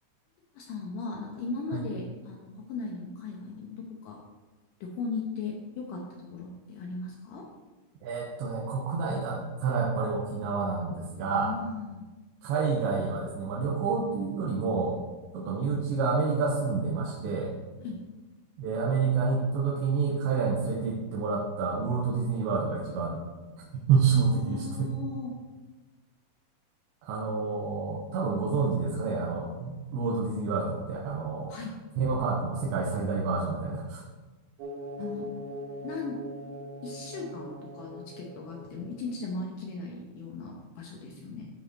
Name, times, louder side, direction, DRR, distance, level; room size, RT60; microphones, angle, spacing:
voice 1, 0.5-4.2 4.8-7.5 11.3-12.0 17.8-18.0 24.1-25.4 31.5-31.7 35.0-35.3 35.8-36.2 36.8-41.5, left 4 dB, 80° left, 0 dB, 1.9 m, -37 dB
voice 2, 8.0-11.5 12.4-15.0 15.3-17.5 18.6-23.2 23.7-24.9 27.0-31.5 32.0-34.0, right 4 dB, 85° right, -4 dB, 3.2 m, -28 dB
sound 1, 34.6-39.3, equal, 65° right, 2.8 m, -41 dB
13.0 x 5.2 x 4.1 m, 1.2 s
omnidirectional pair, 5.0 m